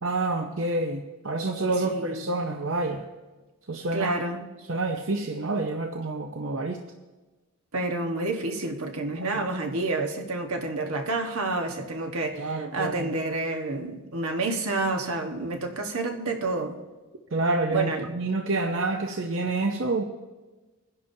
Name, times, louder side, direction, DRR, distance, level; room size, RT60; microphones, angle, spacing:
voice 1, 0.0-3.1 3.7-4.2 4.7-6.8 9.1-9.4 12.3-13.1 17.3-20.0, right 2 dB, 60° right, 0.7 m, -28 dB
voice 2, 1.8-2.2 3.9-4.4 7.7-16.8 17.7-18.1, right 2 dB, 75° right, 1.3 m, -29 dB
22.0 x 10.5 x 2.7 m
head